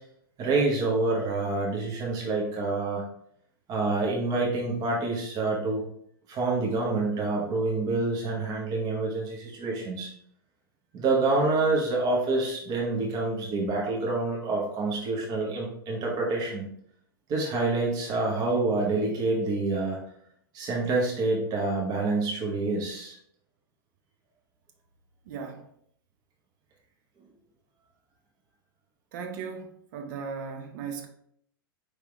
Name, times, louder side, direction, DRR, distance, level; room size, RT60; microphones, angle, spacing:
voice 1, 0.4-3.0 3.7-5.8 6.3-10.1 10.9-16.7 17.3-20.0 20.5-23.2, right 3 dB, 30° right, -2 dB, 1.1 m, -27 dB
voice 2, 25.2-25.7 29.1-31.1, right 6 dB, 50° right, 4 dB, 0.9 m, -37 dB
4.9 x 3.3 x 3.2 m, 0.67 s
figure-of-eight pair, 95°, 12 cm